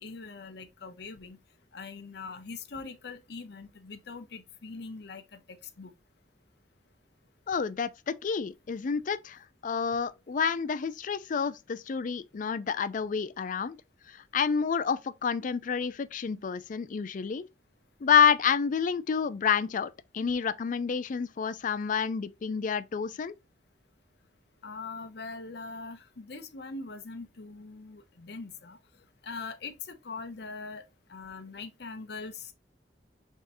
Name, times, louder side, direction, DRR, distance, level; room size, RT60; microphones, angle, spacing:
voice 1, 0.0-1.4 1.7-5.9 24.6-28.8 29.2-30.8 31.1-32.5, left 4 dB, 70° left, 0.7 m, -42 dB
voice 2, 7.5-13.8 14.3-17.5 18.0-23.3, left 6 dB, 50° left, 0.4 m, -29 dB
5.4 x 3.6 x 2.6 m
head